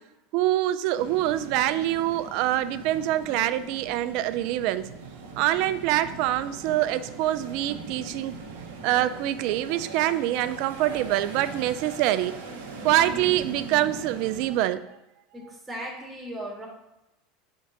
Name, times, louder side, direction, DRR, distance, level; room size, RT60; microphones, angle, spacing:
voice 1, 0.3-4.9 5.4-8.3 8.8-12.4 12.8-14.8, right 13 dB, 60° right, 14 dB, 0.4 m, -25 dB
sound 1, 1.0-14.6, right 4 dB, 80° right, 0.9 m, -41 dB
voice 2, 15.3-16.7, right 1 dB, 20° right, -1 dB, 1.7 m, -37 dB
5.1 x 3.7 x 5.7 m, 0.92 s
hypercardioid pair, 90°, 0 cm